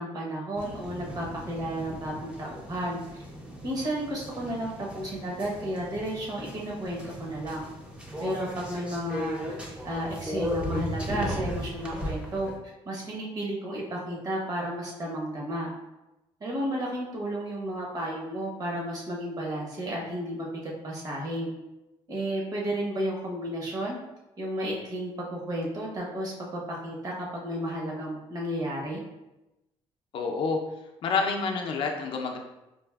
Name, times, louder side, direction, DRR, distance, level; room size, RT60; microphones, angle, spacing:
voice 1, 0.0-3.2 3.6-7.7 8.2-9.4 9.8-12.5 12.9-15.7 16.4-21.5 22.1-24.0 24.4-27.1 27.4-29.0, right 1 dB, 35° right, -2 dB, 0.9 m, -32 dB
sound 1, 0.6-12.6, equal, 10° right, 0.5 m, -37 dB
voice 2, 30.1-30.6 31.0-32.4, left 4 dB, 55° left, 2 dB, 0.5 m, -28 dB
4.6 x 2.5 x 2.3 m, 0.96 s
cardioid pair, 160°, 11 cm